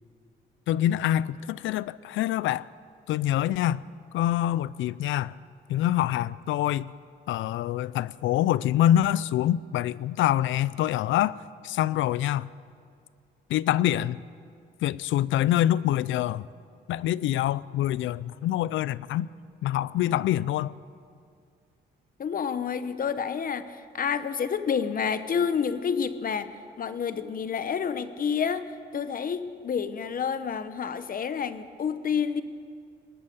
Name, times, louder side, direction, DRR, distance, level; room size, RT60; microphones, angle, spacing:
voice 1, 0.7-2.7 3.1-3.8 4.1-5.3 5.7-6.9 7.3-11.4 11.6-12.5 13.5-14.2 14.8-16.5 16.9-19.3 19.6-20.7, left 12 dB, 75° left, 0.4 m, -25 dB
voice 2, 22.2-26.5 26.8-32.4, left 7 dB, 45° left, 0.9 m, -29 dB
20.0 x 8.9 x 8.0 m
cardioid pair, 90°, 20 cm